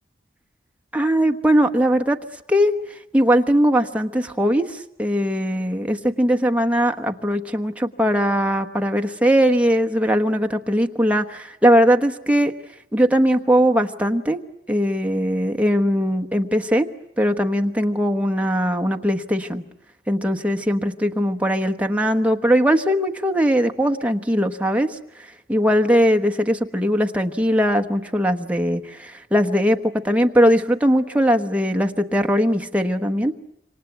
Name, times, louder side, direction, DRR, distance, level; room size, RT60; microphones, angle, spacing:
voice 1, 0.9-2.2 2.5-12.5 12.9-14.4 14.7-16.9 17.2-19.6 20.1-33.3, equal, 10° right, 4 dB, 1.1 m, -20 dB
27.5 x 25.0 x 8.2 m, 0.80 s
head